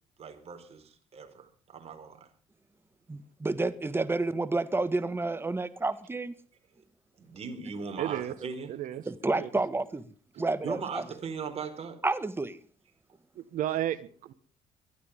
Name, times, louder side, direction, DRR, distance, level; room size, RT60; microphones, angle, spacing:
voice 1, 0.2-2.3 7.2-8.7 10.3-12.0, right 5 dB, 45° right, 4.7 m, -39 dB
voice 2, 3.1-6.3 9.1-10.0 10.4-11.0 12.0-12.6, right 2 dB, 15° right, 1.7 m, -30 dB
voice 3, 8.0-8.3 8.7-9.0 9.3-9.5 10.4-10.5 13.3-14.3, right 12 dB, 70° right, 1.4 m, -33 dB
23.0 x 13.0 x 3.7 m
supercardioid pair, 80°, 14 cm